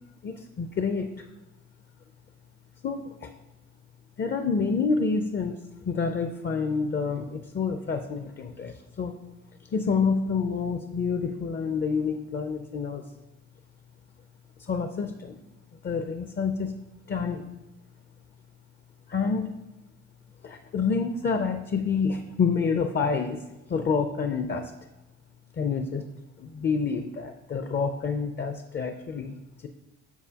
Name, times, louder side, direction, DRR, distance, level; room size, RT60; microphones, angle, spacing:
voice 1, 0.2-1.3 2.8-3.3 4.2-5.6 5.8-9.1 9.7-13.0 14.6-15.3 15.8-16.8 17.1-17.5 19.1-19.5 20.4-23.4 23.7-24.7 25.6-26.0 26.4-29.3, left 5 dB, 35° left, 7 dB, 0.5 m, -28 dB
7.0 x 6.6 x 2.8 m, 1.0 s
cardioid pair, 90°, 30 cm